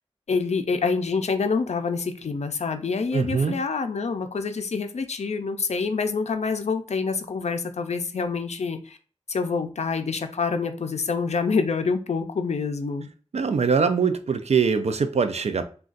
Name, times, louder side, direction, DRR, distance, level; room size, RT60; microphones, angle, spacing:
voice 1, 0.3-9.0 9.3-13.1, left 4 dB, 70° left, 0.4 m, -26 dB
voice 2, 3.1-3.6 13.3-15.6, right 5 dB, 65° right, 0.4 m, -22 dB
2.4 x 2.3 x 3.8 m
wide cardioid pair, 75°, 12 cm